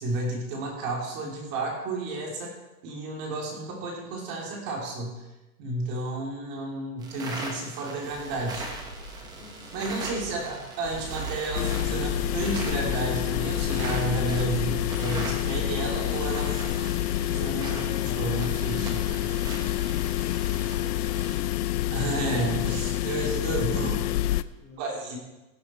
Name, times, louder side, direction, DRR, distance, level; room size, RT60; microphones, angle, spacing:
voice 1, 0.0-2.5 2.8-5.2 5.6-8.7 9.7-16.6 17.1-19.4 21.9-24.0 24.8-25.2, right 2 dB, 30° right, 0 dB, 3.1 m, -32 dB
sound 1, 7.0-21.4, right 2 dB, 10° right, 0.8 m, -40 dB
sound 2, 8.0-22.2, right 4 dB, 70° right, 4.8 m, -41 dB
voice 2, 9.2-10.1 23.3-24.3 24.6-25.2, left 2 dB, 10° left, -10 dB, 3.1 m, -47 dB
sound 3, 11.5-24.4, left 14 dB, 80° left, 0.7 m, -28 dB
16.0 x 11.0 x 4.4 m, 1.0 s
supercardioid pair, 175°, 46 cm